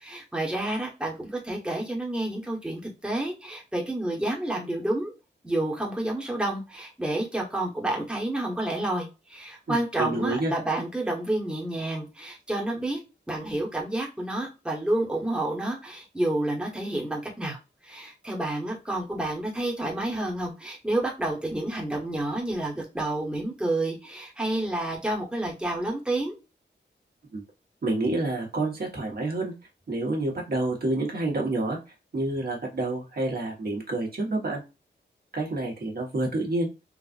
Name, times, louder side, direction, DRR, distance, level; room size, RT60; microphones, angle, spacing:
voice 1, 0.0-5.1 5.4-13.0 13.3-26.3, right 1 dB, 5° right, -1 dB, 1.2 m, -29 dB
voice 2, 9.7-10.5 27.3-27.4 27.8-29.5 29.9-31.8 32.1-34.6 35.3-36.7, right 2 dB, 55° right, -1 dB, 1.4 m, -28 dB
3.9 x 2.4 x 2.5 m, 0.27 s
wide cardioid pair, 80°, 19 cm